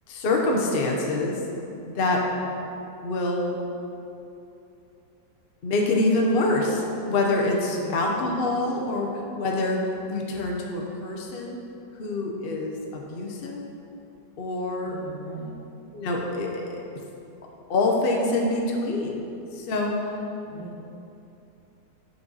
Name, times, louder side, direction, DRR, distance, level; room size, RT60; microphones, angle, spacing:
voice 1, 0.1-1.4 1.8-2.3 3.0-3.6 5.6-11.6 11.9-13.6 14.4-14.9 15.9-16.8 17.7-19.2 19.5-20.2, left 2 dB, 45° left, 0 dB, 0.8 m, -26 dB
voice 2, 7.7-8.0 14.8-15.6 20.4-20.8, right 1 dB, 75° left, -2 dB, 1.8 m, -40 dB
10.0 x 5.2 x 4.0 m, 2.7 s
omnidirectional pair, 2.0 m